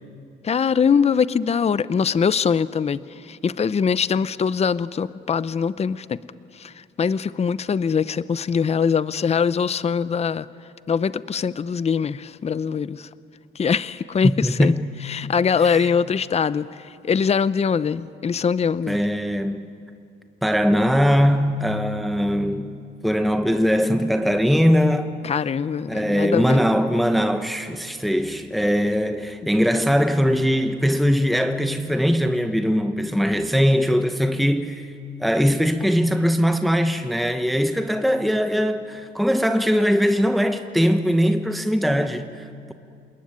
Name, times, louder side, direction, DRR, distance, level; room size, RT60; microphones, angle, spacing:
voice 1, 0.4-6.2 6.6-6.7 7.0-10.5 10.9-13.1 13.6-14.7 15.0-19.0 25.2-26.6, left 6 dB, 30° left, 0.7 m, -22 dB
voice 2, 14.2-14.9 15.6-15.9 18.9-19.7 20.4-22.7 23.0-25.1 25.9-34.9 35.2-42.7, equal, ahead, 1.1 m, -21 dB
27.5 x 20.5 x 9.6 m
cardioid pair, 90°, 20 cm